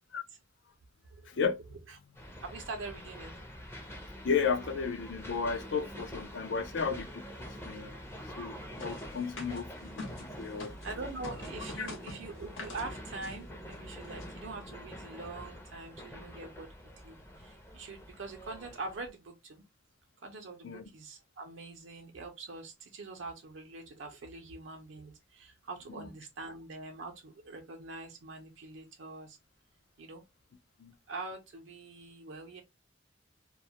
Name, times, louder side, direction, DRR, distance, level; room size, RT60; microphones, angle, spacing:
voice 1, 1.3-1.6 4.2-7.2 7.6-8.0 8.4-10.0 10.4-10.8 11.8-11.9 20.6-20.8 26.0-26.1 30.8-30.9, left 5 dB, 70° left, 0.4 m, -33 dB
sound 1, 2.1-19.1, equal, 15° left, 0.5 m, -46 dB
voice 2, 2.4-3.3 9.5-9.6 10.8-16.7 17.0-19.6 20.2-29.4 30.0-30.2 31.1-32.6, right 3 dB, 75° right, 0.5 m, -44 dB
sound 2, 8.8-10.9 11.2-12.9 13.2-13.4 13.7-13.8 14.0-14.3, left 2 dB, 85° left, 0.9 m, -45 dB
2.2 x 2.1 x 2.7 m
head